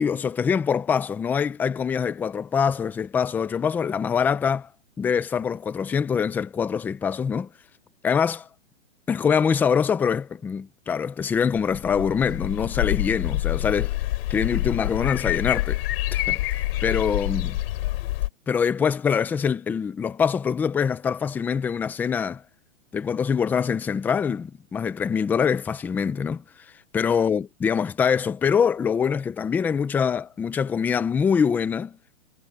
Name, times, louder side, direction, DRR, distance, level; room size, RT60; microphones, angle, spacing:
voice 1, 0.0-4.7 5.0-7.5 8.0-8.5 9.1-13.9 14.3-15.8 16.1-16.4 16.8-17.6 18.5-22.4 22.9-26.4 26.9-32.0, left 6 dB, 5° left, 0.5 m, -24 dB
sound 1, 11.5-18.3, left 16 dB, 50° left, 5.0 m, -27 dB
hypercardioid pair, 150°, 37 cm